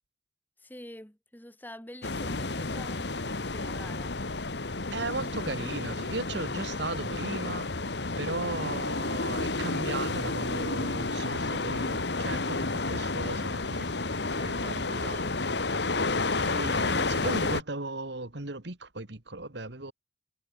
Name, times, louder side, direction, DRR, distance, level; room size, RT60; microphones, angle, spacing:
voice 1, 0.6-4.2 14.9-15.4, left 1 dB, 10° left, 2.7 m, -47 dB
sound 1, 2.0-17.6, left 3 dB, 60° left, 1.6 m, -31 dB
voice 2, 4.9-7.7 8.2-15.2 16.0-19.9, right 2 dB, 65° right, 1.9 m, -37 dB
head